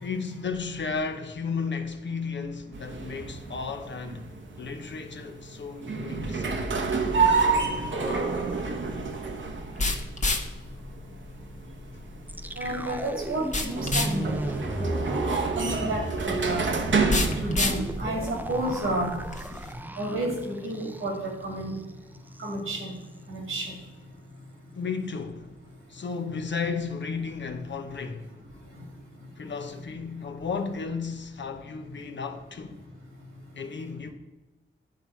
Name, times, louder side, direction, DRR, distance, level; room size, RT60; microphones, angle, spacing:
voice 1, 0.0-4.3 4.6-6.7 24.7-25.6 25.9-28.4 29.4-32.8 33.6-34.1, left 5 dB, 60° left, 0.8 m, -34 dB
sound 1, 2.7-19.8, right 4 dB, 65° right, 1.0 m, -30 dB
sound 2, 7.1-19.7, left 2 dB, 35° left, 1.0 m, -33 dB
sound 3, 12.3-21.3 21.6-21.8 22.1-22.5, right 1 dB, 10° right, 0.5 m, -35 dB
voice 2, 12.6-15.0 15.6-16.7 17.4-19.1 20.0-21.7 22.4-22.9 23.3-23.7, right 1 dB, 85° right, 2.4 m, -31 dB
10.5 x 4.3 x 4.6 m
cardioid pair, 55°, 21 cm